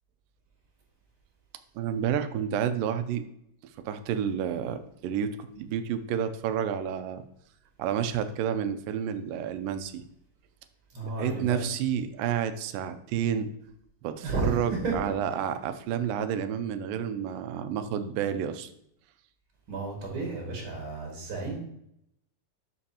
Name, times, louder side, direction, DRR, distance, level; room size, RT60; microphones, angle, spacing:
voice 1, 1.8-3.2 3.8-7.2 7.8-10.0 11.0-13.5 14.0-18.7, right 8 dB, 80° right, 10 dB, 2.3 m, -30 dB
voice 2, 10.9-11.7 14.2-15.0 19.7-21.6, right 3 dB, 45° right, -1 dB, 2.1 m, -32 dB
11.0 x 5.6 x 2.9 m, 0.77 s
omnidirectional pair, 4.0 m